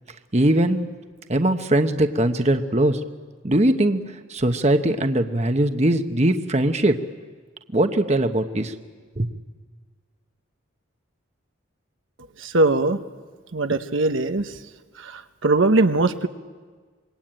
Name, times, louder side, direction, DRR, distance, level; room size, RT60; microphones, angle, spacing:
voice 1, 0.3-0.9 1.3-3.0 3.4-7.0 7.7-8.8 9.2-9.3, right 1 dB, 35° right, 7 dB, 1.1 m, -21 dB
voice 2, 12.4-13.0 13.5-14.6 15.0-16.3, right 2 dB, 75° right, 8 dB, 1.1 m, -21 dB
26.0 x 23.0 x 9.0 m, 1.5 s
head